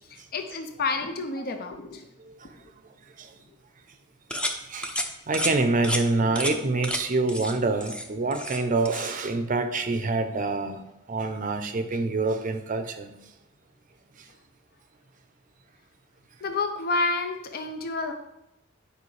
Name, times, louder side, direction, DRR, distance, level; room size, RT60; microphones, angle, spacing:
voice 1, 0.1-2.1 6.5-6.6 16.4-18.1, left 3 dB, 50° left, 0.6 m, -29 dB
sound 1, 4.3-4.6 4.8-5.1 5.3-5.5 5.8-6.0 6.4-6.5 6.8-7.0 7.3-7.5 7.8-8.6 8.9-9.1, left 1 dB, 5° left, 0.6 m, -30 dB
voice 2, 5.3-10.8 11.1-13.1, right 3 dB, 40° right, 0.6 m, -26 dB
9.4 x 5.0 x 3.2 m
head